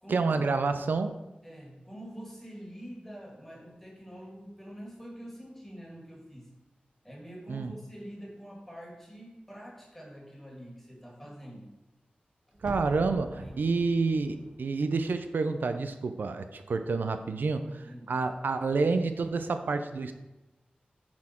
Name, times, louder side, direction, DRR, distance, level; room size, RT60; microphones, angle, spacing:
voice 1, 0.1-1.1 7.5-7.7 12.6-17.7 18.1-20.1, right 4 dB, 85° right, 8 dB, 0.4 m, -28 dB
voice 2, 1.4-6.5 7.0-11.8 12.5-12.6 13.4-13.9 17.5-18.2, equal, 10° left, -2 dB, 2.0 m, -46 dB
sound 1, 12.6-15.5 15.8-15.9, right 1 dB, 30° right, 0.6 m, -45 dB
8.5 x 4.2 x 4.3 m, 1.0 s
wide cardioid pair, 95°, 3 cm